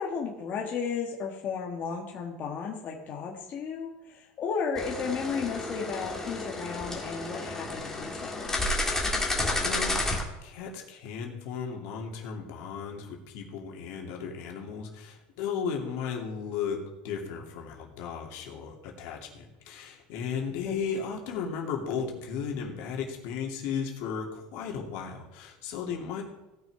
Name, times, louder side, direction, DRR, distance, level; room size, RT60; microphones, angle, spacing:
voice 1, 0.0-8.7 20.6-20.8, left 6 dB, 35° left, -1 dB, 1.5 m, -34 dB
sound 1, 4.8-10.2, left 2 dB, 10° left, 1.9 m, -31 dB
voice 2, 9.6-10.0 10.4-26.2, left 6 dB, 65° left, 0 dB, 2.5 m, -35 dB
16.5 x 6.4 x 4.8 m, 1.0 s
supercardioid pair, 135°, 5 cm